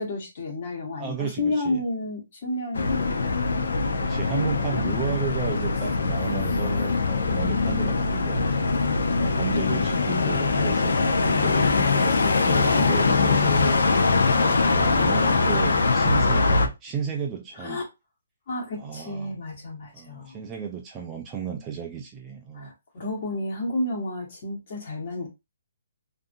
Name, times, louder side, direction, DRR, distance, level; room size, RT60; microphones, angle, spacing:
voice 1, 0.0-3.3 4.4-4.9 8.9-10.0 17.6-17.8 18.5-20.5 22.5-25.3, left 2 dB, 40° left, 1.1 m, -32 dB
voice 2, 1.0-1.8 4.0-8.7 9.1-10.9 11.2-17.8 18.8-19.4 19.9-22.7, right 7 dB, 15° right, 0.3 m, -34 dB
sound 1, 2.8-16.7, left 3 dB, 80° left, 0.5 m, -22 dB
2.5 x 2.5 x 2.5 m
hypercardioid pair, 170°, 0 cm